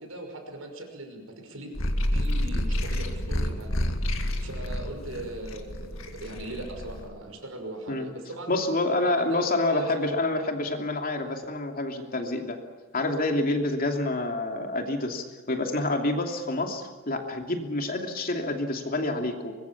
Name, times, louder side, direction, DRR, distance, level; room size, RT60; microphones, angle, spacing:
voice 1, 0.0-1.7 2.1-3.8 4.0-8.5 8.9-10.1, right 2 dB, 85° right, 4 dB, 5.9 m, -40 dB
sound 1, 1.8-7.1, left 1 dB, 75° left, 2.2 m, -29 dB
voice 2, 8.5-12.6 12.9-19.5, left 2 dB, 45° left, 3 dB, 2.9 m, -28 dB
24.0 x 21.5 x 7.3 m, 1.4 s
head